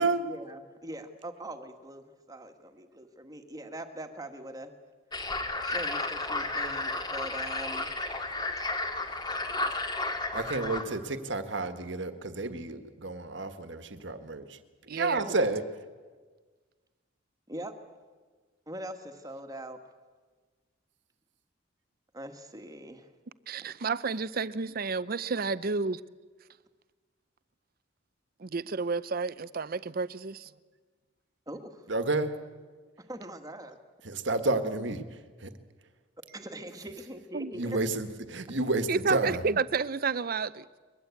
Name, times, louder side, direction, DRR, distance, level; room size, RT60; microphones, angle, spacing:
voice 1, 0.0-4.7 5.6-7.9 17.5-17.7 18.7-19.8 22.1-23.1 31.5-31.9 33.0-33.8 36.3-37.8, right 1 dB, 20° right, 1.6 m, -42 dB
sound 1, 5.1-10.8, left 2 dB, 20° left, 2.0 m, -32 dB
voice 2, 10.3-14.6 14.9-15.6 31.9-32.3 34.0-35.0 35.4-35.5 37.5-39.4, right 2 dB, 65° right, 1.5 m, -30 dB
voice 3, 14.9-15.3 23.5-26.0 28.4-30.5 37.3-37.5 38.9-40.7, right 4 dB, 50° right, 0.6 m, -31 dB
22.5 x 22.0 x 8.4 m
head